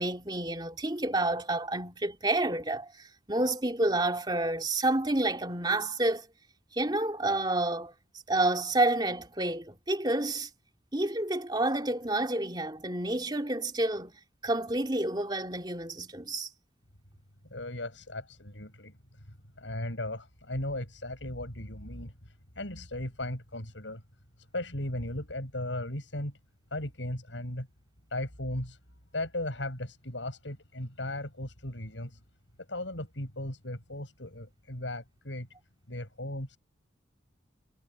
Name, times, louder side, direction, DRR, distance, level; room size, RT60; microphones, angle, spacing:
voice 1, 0.0-6.3 6.7-7.9 8.3-10.5 10.9-14.1 14.4-16.5, right 2 dB, 25° right, 3.0 m, -29 dB
voice 2, 17.5-19.0 19.6-24.0 24.5-26.3 26.7-27.7 28.1-28.8 29.1-32.2 32.7-35.5 35.9-36.6, left 1 dB, 80° left, 7.4 m, -37 dB
head